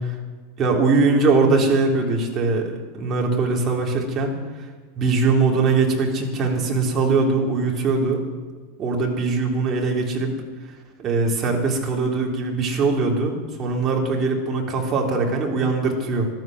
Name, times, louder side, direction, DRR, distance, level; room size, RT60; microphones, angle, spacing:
voice 1, 0.6-2.7 3.0-4.3 5.0-8.2 8.8-10.3 11.0-16.3, right 3 dB, 30° right, -1 dB, 3.4 m, -21 dB
13.5 x 12.0 x 7.6 m, 1.4 s
figure-of-eight pair, 85°, 0 cm